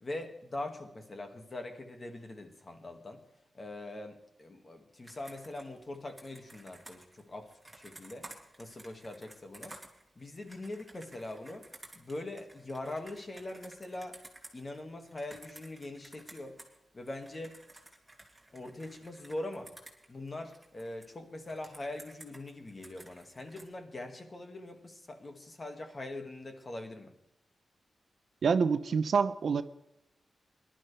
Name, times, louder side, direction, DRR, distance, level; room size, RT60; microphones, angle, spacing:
voice 1, 0.0-3.2 3.5-8.3 8.6-9.7 10.2-11.7 11.9-14.2 14.5-16.6 16.9-17.6 18.5-19.7 20.1-27.1, left 2 dB, 30° left, 5 dB, 1.9 m, -42 dB
Computer keyboard, 5.0-16.8 17.0-21.1 21.4-23.7, right 1 dB, 10° right, 2.7 m, -54 dB
voice 2, 28.4-29.6, right 5 dB, 65° right, 12 dB, 0.7 m, -27 dB
20.5 x 12.0 x 3.4 m, 0.87 s
wide cardioid pair, 110°, 0 cm